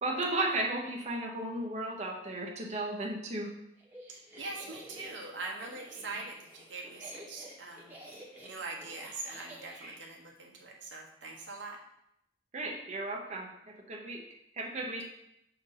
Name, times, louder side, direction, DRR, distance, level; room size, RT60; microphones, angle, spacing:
voice 1, 0.0-3.5 12.5-13.5 13.9-14.2 14.5-15.0, right 2 dB, 40° right, -2 dB, 0.9 m, -34 dB
sound 1, 3.8-10.0, right 1 dB, 10° right, 1.1 m, -50 dB
voice 2, 4.4-8.0 8.4-11.8, right 3 dB, 80° right, 0 dB, 1.1 m, -42 dB
6.8 x 2.7 x 5.6 m, 0.79 s
head